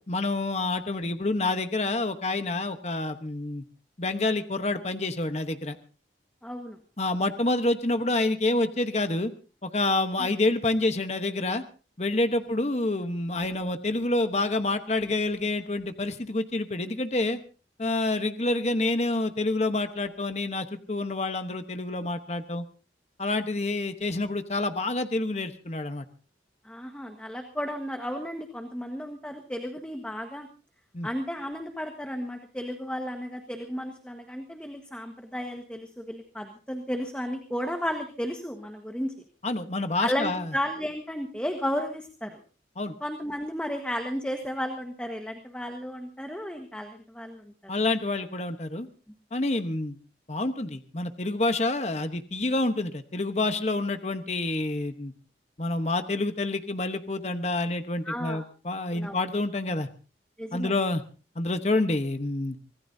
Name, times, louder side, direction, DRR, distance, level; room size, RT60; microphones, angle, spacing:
voice 1, 0.1-3.6 4.0-5.8 7.0-9.3 9.6-11.6 12.0-17.4 17.8-22.6 23.2-26.0 30.9-31.1 39.4-40.5 42.8-42.9 47.7-48.9 49.3-50.0 50.3-55.1 55.6-59.9 60.5-61.0 61.4-62.6, left 2 dB, 35° left, 8 dB, 1.1 m, -28 dB
voice 2, 6.4-6.8 26.6-30.5 31.0-39.1 40.0-42.4 43.0-47.5 58.0-58.4 58.9-59.2 60.4-60.7, equal, 5° left, 4 dB, 1.4 m, -33 dB
25.0 x 18.0 x 2.7 m, 0.37 s
head